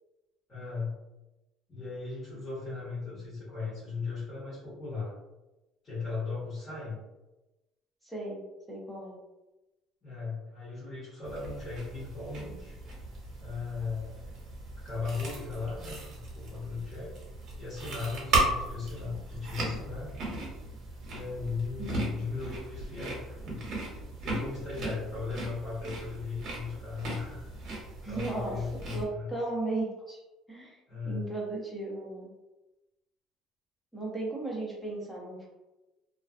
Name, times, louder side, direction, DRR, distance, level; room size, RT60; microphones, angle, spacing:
voice 1, 0.5-0.9 1.7-5.1 5.8-7.0 10.0-12.8 13.4-14.3 14.8-17.2 17.6-20.4 21.1-23.6 24.2-27.5 28.1-29.3 30.9-31.3, left 4 dB, 25° left, -10 dB, 1.1 m, -37 dB
voice 2, 8.0-8.4 8.7-9.2 21.8-22.2 28.0-28.6 28.9-30.2 30.5-30.8 31.0-32.3 33.9-35.5, right 2 dB, ahead, -4 dB, 0.6 m, -35 dB
sound 1, 11.2-29.0, right 2 dB, 50° right, 0.8 m, -37 dB
2.4 x 2.2 x 2.4 m, 1.0 s
cardioid pair, 150°, 0 cm